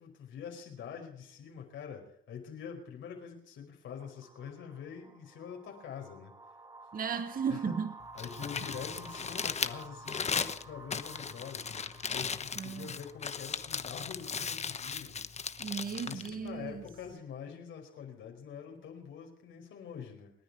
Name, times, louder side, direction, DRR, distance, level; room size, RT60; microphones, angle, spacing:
voice 1, 0.0-6.3 7.5-7.8 8.1-15.2 16.0-20.3, left 7 dB, 75° left, 2 dB, 5.0 m, -45 dB
sound 1, 4.0-13.5, right 3 dB, 20° right, 1.6 m, -52 dB
voice 2, 6.9-7.9 12.6-12.9 15.6-16.8, right 6 dB, 45° right, 9 dB, 1.5 m, -35 dB
Crumpling crinkling, 8.0-17.1, left 6 dB, 35° left, 0.9 m, -37 dB
28.5 x 10.0 x 4.7 m, 0.68 s
cardioid pair, 90°, 20 cm